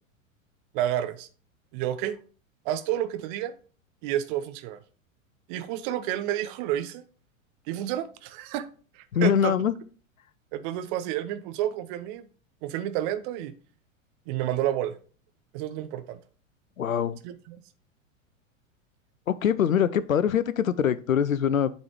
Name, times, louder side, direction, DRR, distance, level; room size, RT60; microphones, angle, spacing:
voice 1, 0.7-1.3 1.7-2.2 2.6-3.5 4.0-4.8 5.5-7.0 7.7-8.7 8.9-9.5 10.5-12.3 12.6-13.5 14.3-15.0 15.5-16.2 17.2-17.6, right 12 dB, 40° right, 0.8 m, -30 dB
voice 2, 9.1-9.7 16.8-17.2 19.3-21.7, left 8 dB, 75° left, 0.7 m, -23 dB
8.4 x 4.1 x 4.8 m
figure-of-eight pair, 95°, 41 cm